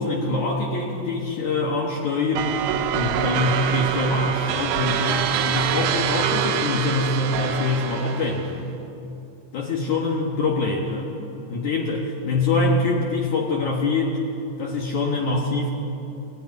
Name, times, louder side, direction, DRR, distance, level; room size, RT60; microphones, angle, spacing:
voice 1, 0.0-2.6 2.9-8.7 9.5-11.1 11.5-14.2 14.6-15.7, left 3 dB, 75° left, -1 dB, 1.7 m, -24 dB
sound 1, 2.4-8.6, right 9 dB, 80° right, 2.4 m, -25 dB
21.0 x 13.5 x 9.6 m, 2.8 s
omnidirectional pair, 5.8 m